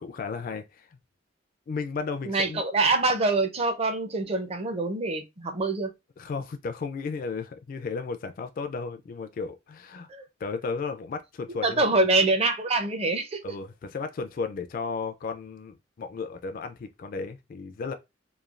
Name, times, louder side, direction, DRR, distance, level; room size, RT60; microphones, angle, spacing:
voice 1, 0.0-0.9 1.7-2.6 6.2-10.1 10.4-11.8 13.4-17.9, left 4 dB, 45° left, 0.3 m, -34 dB
voice 2, 2.2-5.9 10.1-10.2 11.6-13.4, right 2 dB, 35° right, 0.5 m, -25 dB
3.1 x 2.2 x 2.4 m
head